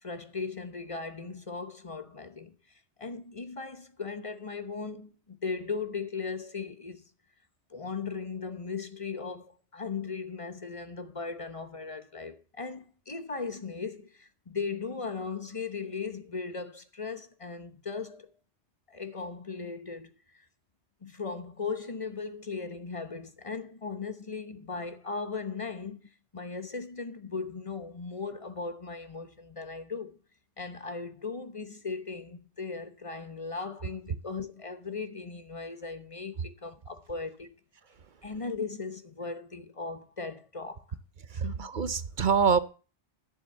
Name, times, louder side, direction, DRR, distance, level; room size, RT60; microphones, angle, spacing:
voice 1, 0.0-2.5 3.0-7.0 7.7-18.3 18.9-20.1 21.0-26.0 26.3-30.2 30.6-37.5 38.2-40.8 41.4-41.7, left 4 dB, 30° left, 1.0 m, -37 dB
voice 2, 41.3-42.6, right 6 dB, 50° right, 0.9 m, -25 dB
11.0 x 7.0 x 6.8 m
omnidirectional pair, 1.2 m